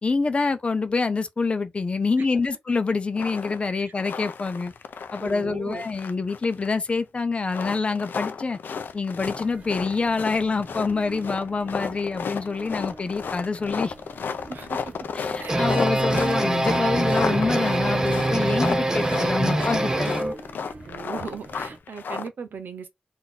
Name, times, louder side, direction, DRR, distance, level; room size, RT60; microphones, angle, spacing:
voice 1, 0.0-4.7 5.1-8.6 8.9-13.9 15.1-20.1, left 4 dB, 35° left, 0.6 m, -26 dB
sound 1, 3.2-3.7 4.0-5.4 5.7-6.9 7.4-22.3, left 6 dB, 90° left, 0.5 m, -33 dB
voice 2, 5.2-5.9 14.5-15.0 15.4-15.6 20.8-22.9, right 5 dB, 80° right, 0.9 m, -38 dB
sound 2, 9.2-21.8, right 2 dB, 45° right, 1.2 m, -45 dB
sound 3, 15.2-20.3, right 1 dB, 20° right, 0.7 m, -24 dB
4.1 x 2.6 x 4.1 m
wide cardioid pair, 125°, 3 cm